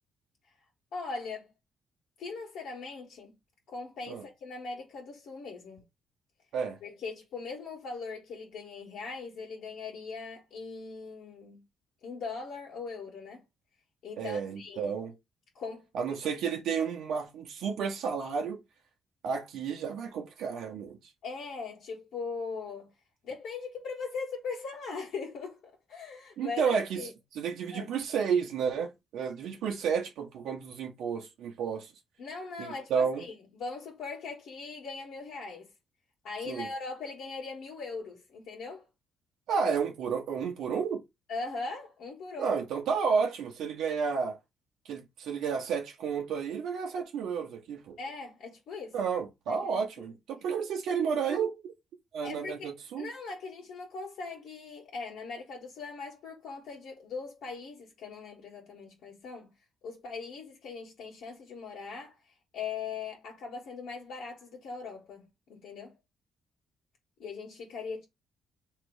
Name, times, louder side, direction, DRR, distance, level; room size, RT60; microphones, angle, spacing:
voice 1, 0.9-1.5 2.2-3.3 3.7-5.8 6.8-11.6 12.0-13.4 14.0-14.9 15.5-15.9 21.2-22.9 23.2-27.1 27.7-27.9 32.2-35.7 36.2-38.9 41.3-42.5 48.0-49.0 49.5-49.8 52.2-52.7 53.0-59.5 59.8-65.9 67.2-68.0, left 4 dB, 75° left, 1.6 m, -40 dB
voice 2, 14.2-15.1 15.9-18.6 19.2-21.0 26.4-27.0 27.3-31.9 32.6-33.2 36.5-36.7 39.5-41.0 42.4-44.4 44.8-48.0 48.9-51.5 52.1-53.1, right 6 dB, 80° right, 1.0 m, -31 dB
3.2 x 2.9 x 4.7 m
cardioid pair, 90°, 0 cm